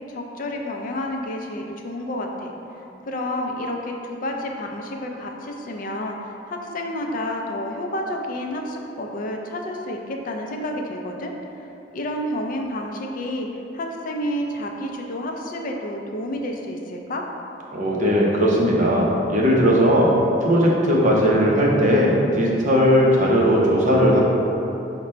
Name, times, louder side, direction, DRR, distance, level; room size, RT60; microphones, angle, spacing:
voice 1, 0.1-2.5 3.1-11.3 11.9-13.5 13.7-17.3, left 1 dB, 50° left, 2 dB, 0.4 m, -30 dB
voice 2, 17.7-20.1 20.4-24.2, equal, 45° right, -3 dB, 0.7 m, -18 dB
4.9 x 2.2 x 4.2 m, 2.9 s
head